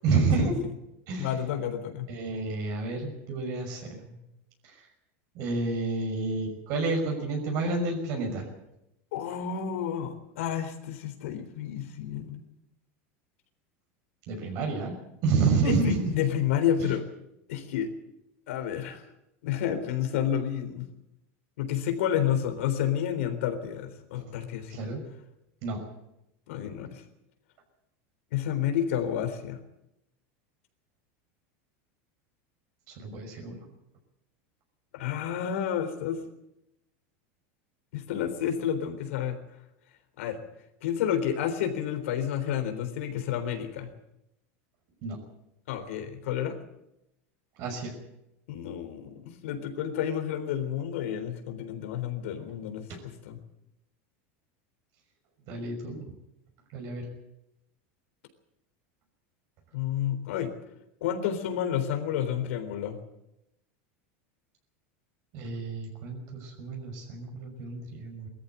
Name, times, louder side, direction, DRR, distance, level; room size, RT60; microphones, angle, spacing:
voice 1, 0.0-0.6 1.1-1.3 2.1-4.1 4.6-4.7 5.3-8.5 14.3-15.0 15.2-16.1 16.8-16.9 24.7-25.0 25.6-25.8 32.9-33.6 45.0-45.2 47.6-48.0 52.9-53.0 55.5-56.0 56.7-57.1 65.3-68.3, right 3 dB, 55° right, 2 dB, 6.1 m, -29 dB
voice 2, 1.2-2.1 9.1-12.4 15.6-17.0 17.5-17.9 18.5-19.0 19.4-20.9 21.6-24.9 26.5-27.0 28.3-29.6 34.9-36.2 37.9-39.4 40.2-40.4 40.8-43.9 45.7-46.6 48.5-53.4 59.7-60.5 61.0-63.0, left 9 dB, 80° left, 6 dB, 3.7 m, -30 dB
20.0 x 14.0 x 9.5 m, 0.86 s
supercardioid pair, 140°, 7 cm